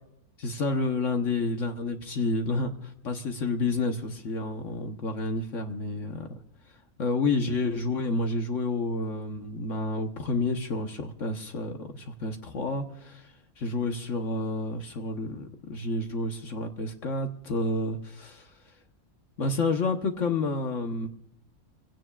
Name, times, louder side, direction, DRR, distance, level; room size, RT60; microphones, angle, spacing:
voice 1, 0.4-6.4 7.0-18.5 19.4-21.1, left 3 dB, 60° left, 5 dB, 1.5 m, -30 dB
24.5 x 17.0 x 2.4 m, 0.75 s
omnidirectional pair, 1.5 m